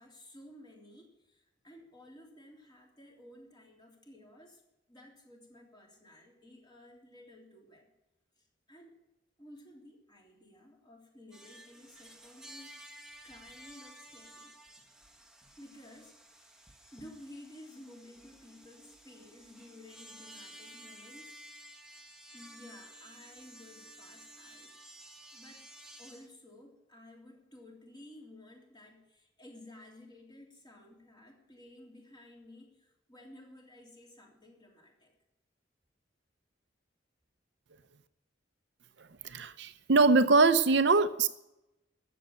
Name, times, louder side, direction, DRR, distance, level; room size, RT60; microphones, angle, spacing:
voice 1, 0.0-4.6 4.9-7.9 8.4-9.0 9.4-12.8 13.2-14.5 15.6-16.2 16.9-21.3 22.3-24.7 25.3-25.6 26.0-35.1, left 1 dB, 25° left, 0 dB, 3.3 m, -54 dB
sound 1, 11.3-26.3, right 1 dB, 5° right, 1.2 m, -53 dB
voice 2, 39.2-41.3, right 3 dB, 65° right, 11 dB, 0.7 m, -23 dB
13.0 x 8.0 x 8.9 m, 0.91 s
head